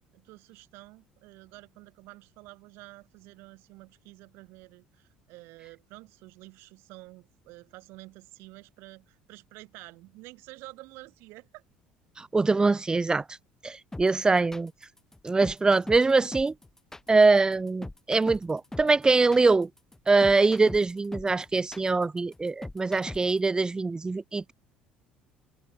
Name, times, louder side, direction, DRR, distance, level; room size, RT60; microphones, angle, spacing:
voice 1, 0.1-11.6, right 22 dB, 65° right, 4.3 m, -49 dB
voice 2, 12.2-13.2 13.6-14.7 15.2-16.5 17.1-19.7 20.1-24.5, right 3 dB, 20° right, 0.4 m, -23 dB
sound 1, 13.9-23.5, left 2 dB, 10° left, 1.5 m, -41 dB
open air
hypercardioid pair, 60°, 4 cm